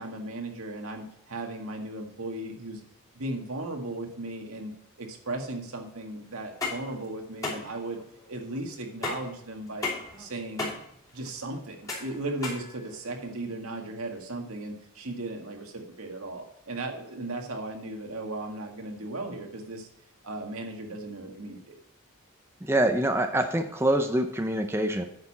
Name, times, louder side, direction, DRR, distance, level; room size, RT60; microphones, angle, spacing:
voice 1, 0.0-2.8 3.2-4.7 5.0-8.0 8.3-9.9 10.2-10.7 11.1-19.9 20.2-21.8, right 2 dB, 85° right, 2 dB, 1.9 m, -36 dB
sound 1, 6.4-13.3, left 3 dB, 15° left, 2.9 m, -36 dB
voice 2, 22.6-25.0, right 1 dB, 10° right, 5 dB, 0.6 m, -25 dB
9.6 x 6.8 x 4.2 m, 0.76 s
head